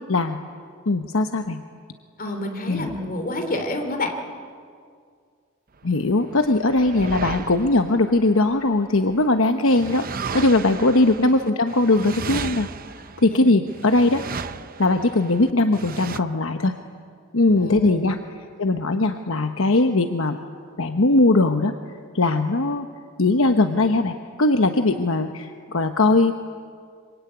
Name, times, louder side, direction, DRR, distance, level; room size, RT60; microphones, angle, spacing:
voice 1, 0.1-0.4 0.9-1.6 2.7-2.9 5.8-10.0 10.3-12.7 13.2-14.2 14.8-16.8 17.3-18.2 18.6-20.4 20.8-21.7 22.1-22.9 23.2-26.3, left 2 dB, 60° left, 7 dB, 1.1 m, -20 dB
voice 2, 2.2-4.1 10.7-10.8 13.3-13.5 17.6-17.9, left 2 dB, 40° left, 4 dB, 3.0 m, -28 dB
sound 1, 6.0-9.1 9.7-16.2, right 5 dB, 40° right, 0.7 m, -34 dB
25.5 x 24.5 x 9.6 m, 2.1 s
head